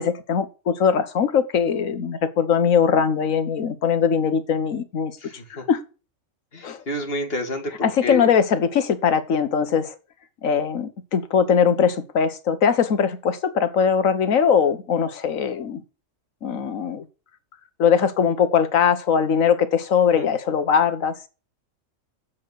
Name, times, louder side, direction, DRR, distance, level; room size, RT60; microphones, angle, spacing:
voice 1, 0.0-5.2 5.5-5.8 6.6-6.8 7.8-10.0 10.4-15.8 16.4-17.0 17.8-21.2, left 7 dB, 80° left, 1.5 m, -21 dB
voice 2, 5.2-5.6 6.5-8.3 20.1-20.3, left 1 dB, 45° left, 2.3 m, -29 dB
7.5 x 7.1 x 6.3 m
omnidirectional pair, 1.4 m